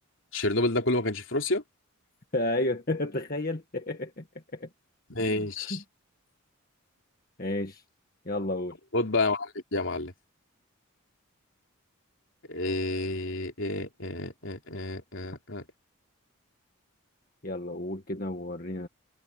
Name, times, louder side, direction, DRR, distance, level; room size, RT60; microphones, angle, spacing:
voice 1, 0.3-1.6 5.1-5.8 8.9-10.1 12.5-15.6, left 2 dB, 60° left, 3.7 m, -29 dB
voice 2, 2.3-4.2 4.5-4.7 5.2-5.8 7.4-7.8 8.2-8.8 17.4-18.9, left 1 dB, 40° left, 1.7 m, -32 dB
head